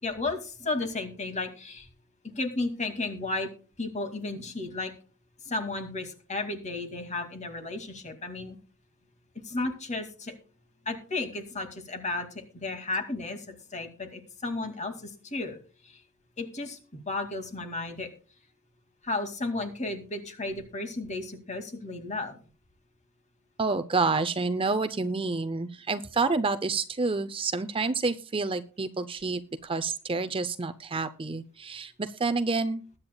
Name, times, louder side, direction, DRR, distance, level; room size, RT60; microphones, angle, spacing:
voice 1, 0.0-1.9 2.2-3.5 3.8-4.9 5.4-8.6 9.4-10.3 10.9-12.3 12.5-15.6 15.8-16.0 16.4-18.1 19.0-22.4, left 2 dB, 30° left, 6 dB, 2.3 m, -33 dB
voice 2, 23.6-32.8, right 3 dB, 25° right, 11 dB, 0.6 m, -29 dB
21.0 x 8.8 x 2.3 m, 0.37 s
head